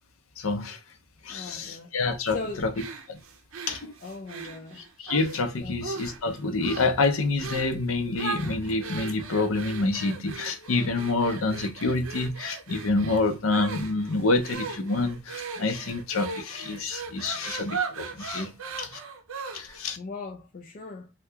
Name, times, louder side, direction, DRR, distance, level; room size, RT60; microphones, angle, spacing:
voice 1, 0.4-0.8 1.2-2.7 3.1-3.2 3.7-3.9 5.0-18.5 18.8-19.0 19.5-20.0, left 3 dB, 80° left, 0.6 m, -27 dB
voice 2, 1.3-1.9 2.3-2.7 4.0-4.8 5.6-5.8 20.0-21.1, left 3 dB, 40° left, 0.3 m, -38 dB
sound 1, 2.7-5.4 5.8-6.3 6.6-7.0 7.4-7.8 8.2-19.8, right 5 dB, 80° right, 0.5 m, -38 dB
2.8 x 2.2 x 3.4 m
head